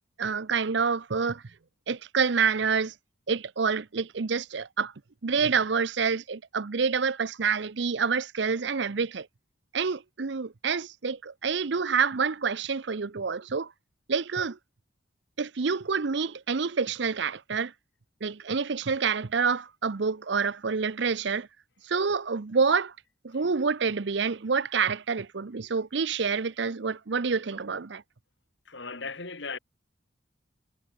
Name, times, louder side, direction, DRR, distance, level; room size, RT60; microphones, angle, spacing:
voice 1, 0.2-1.4 1.9-2.9 3.3-4.9 5.2-9.3 9.7-13.7 14.1-14.6 15.4-17.7 18.2-21.5 21.8-22.9 23.2-28.0, right 5 dB, 60° right, 0.6 m, -27 dB
voice 2, 28.7-29.6, left 4 dB, 65° left, 2.6 m, -37 dB
head